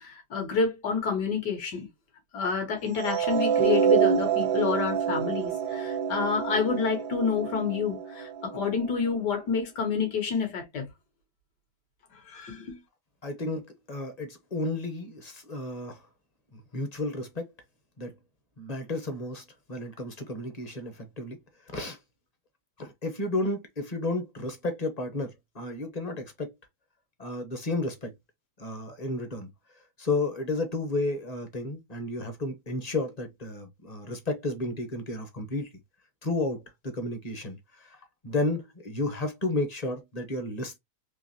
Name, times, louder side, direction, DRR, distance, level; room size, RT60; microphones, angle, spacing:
voice 1, 0.0-1.9 2.3-10.9 12.3-12.8, left 5 dB, 75° left, 1.9 m, -29 dB
sound 1, 3.0-9.2, right 7 dB, 85° right, 1.3 m, -27 dB
voice 2, 13.2-16.0 16.5-17.5 18.0-18.1 18.6-21.4 21.7-22.0 22.8-26.5 27.2-28.1 28.6-29.5 30.0-35.7 36.2-38.0 38.2-40.8, left 2 dB, 35° left, 0.7 m, -32 dB
3.8 x 2.8 x 2.7 m
omnidirectional pair, 1.8 m